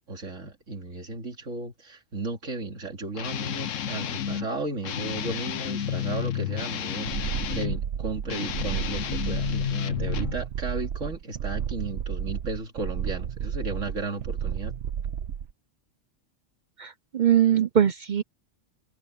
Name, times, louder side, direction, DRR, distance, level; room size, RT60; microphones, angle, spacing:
voice 1, 0.0-14.7, right 3 dB, 85° right, 3.1 m, -34 dB
Guitar, 3.2-4.5 4.8-7.8 8.2-10.4, left 10 dB, 90° left, 1.2 m, -31 dB
sound 1, 7.1-15.5, right 8 dB, 70° right, 1.1 m, -32 dB
voice 2, 16.8-18.2, right 9 dB, 55° right, 0.6 m, -22 dB
omnidirectional pair, 1.3 m